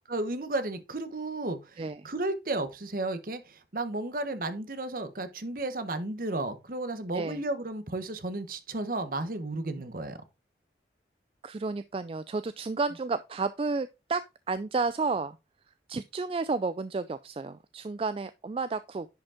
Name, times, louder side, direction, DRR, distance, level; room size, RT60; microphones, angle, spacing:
voice 1, 0.1-10.2, right 2 dB, 50° right, 1.0 m, -33 dB
voice 2, 1.8-2.1 7.1-7.4 11.4-15.4 15.9-19.1, right 4 dB, 30° right, 0.3 m, -31 dB
10.5 x 5.2 x 3.6 m
head